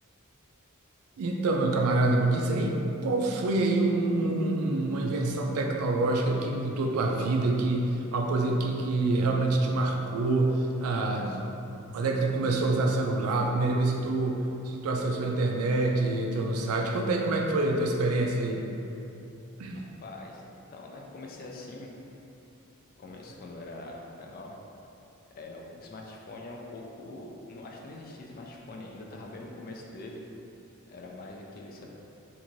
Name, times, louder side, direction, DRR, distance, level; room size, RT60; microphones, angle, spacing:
voice 1, 1.2-11.4 11.9-18.6 19.6-19.8, right 2 dB, 85° right, 1 dB, 0.4 m, -26 dB
voice 2, 19.7-20.4 20.7-21.9 23.0-24.5 25.4-30.2 30.9-31.9, left 2 dB, 45° left, -1 dB, 0.3 m, -43 dB
2.6 x 2.5 x 3.0 m, 2.8 s
head